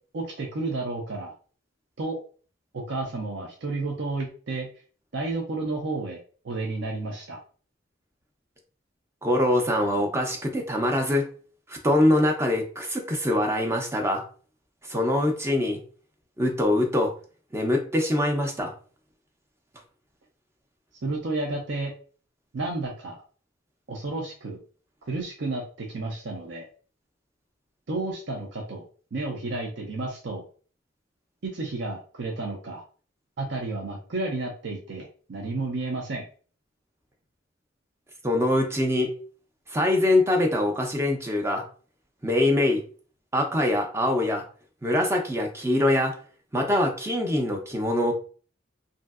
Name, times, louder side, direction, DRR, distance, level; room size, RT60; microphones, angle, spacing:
voice 1, 0.1-1.3 2.0-2.2 2.7-4.7 5.1-6.2 6.4-7.4 21.0-21.9 22.5-23.2 23.9-24.6 25.1-26.7 27.9-28.9 29.1-30.4 31.4-32.8 33.4-36.3, right 2 dB, 60° right, 0 dB, 0.5 m, -31 dB
voice 2, 9.2-11.3 11.7-14.2 14.9-15.8 16.4-17.1 17.5-18.7 38.2-39.1 39.7-41.6 42.2-42.8 43.3-44.4 44.8-46.1 46.5-48.1, left 1 dB, 15° right, 2 dB, 0.5 m, -23 dB
3.0 x 2.6 x 2.3 m, 0.41 s
head